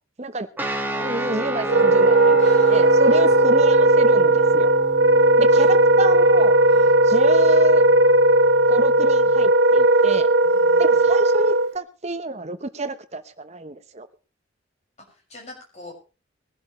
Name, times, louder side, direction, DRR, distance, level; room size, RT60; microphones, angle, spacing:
sound 1, 0.6-9.5, equal, 10° right, 1.7 m, -32 dB
voice 1, 1.0-2.4 2.7-4.7 5.4-6.5 7.0-7.8 8.7-10.3 10.8-14.1, right 2 dB, 35° right, 11 dB, 1.0 m, -28 dB
Wind instrument woodwind instrument, 1.6-11.7, right 2 dB, 65° right, 0.8 m, -16 dB
voice 2, 2.4-3.3 5.5-5.7 6.6-6.9 10.4-11.1 15.1-16.0, left 2 dB, 35° left, 0 dB, 5.8 m, -43 dB
21.5 x 11.5 x 3.2 m, 0.33 s
head